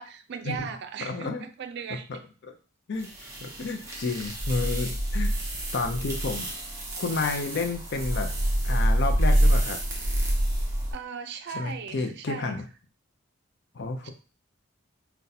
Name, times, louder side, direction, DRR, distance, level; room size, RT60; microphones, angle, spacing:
voice 1, 0.0-2.3 10.9-12.6 14.0-14.1, right 7 dB, 55° right, 8 dB, 0.4 m, -38 dB
voice 2, 1.0-1.4 2.1-2.5 2.9-3.1 3.4-5.3 5.7-6.5 7.0-8.3 8.6-9.8 11.5-12.7 13.8-14.1, left 3 dB, 55° left, 5 dB, 0.5 m, -31 dB
sound 1, 3.0-10.9, right 1 dB, 15° right, 0.6 m, -26 dB
3.9 x 2.2 x 2.7 m, 0.36 s
head